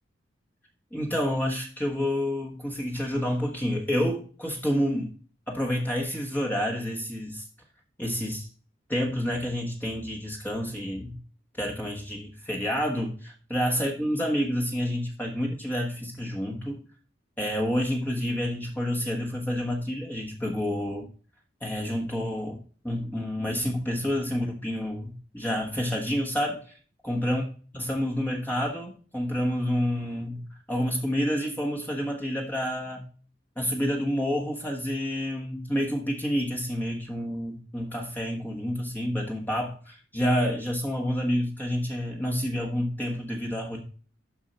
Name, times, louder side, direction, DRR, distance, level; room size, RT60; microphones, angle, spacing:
voice 1, 0.9-5.1 5.5-7.4 8.0-8.5 8.9-11.2 11.6-16.8 17.4-21.1 21.6-22.6 22.8-26.6 27.0-27.4 27.7-33.0 33.6-43.8, equal, 10° left, 0 dB, 1.4 m, -29 dB
12.0 x 4.6 x 4.4 m, 0.40 s
head